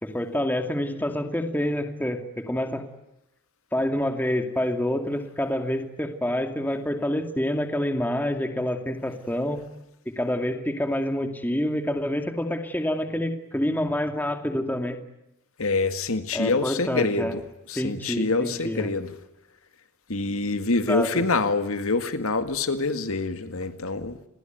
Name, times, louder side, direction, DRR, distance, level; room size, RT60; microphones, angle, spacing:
voice 1, 0.0-2.8 3.7-9.6 10.1-15.0 16.3-17.3 17.8-18.9 20.9-21.2, left 1 dB, 10° left, 6 dB, 2.4 m, -27 dB
voice 2, 15.6-17.4 17.7-19.2 20.1-24.2, left 3 dB, 75° left, 9 dB, 2.0 m, -26 dB
29.0 x 22.0 x 9.4 m, 0.91 s
head